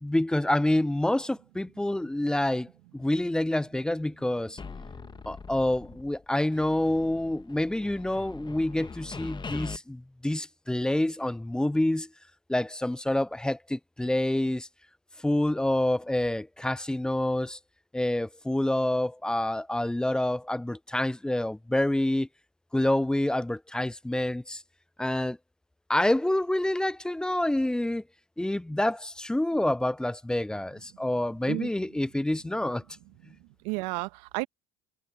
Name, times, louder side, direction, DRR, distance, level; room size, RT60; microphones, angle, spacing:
voice 1, 0.0-4.6 5.3-12.1 12.5-14.7 15.2-17.6 17.9-22.3 22.7-24.6 25.0-25.4 25.9-28.0 28.4-32.8, left 1 dB, 5° left, 0.3 m, -27 dB
sound 1, 4.6-6.2 6.5-9.8, left 5 dB, 20° left, 1.5 m, -42 dB
voice 2, 33.3-34.5, right 28 dB, 70° right, 1.5 m, -33 dB
hypercardioid pair, 70°, 21 cm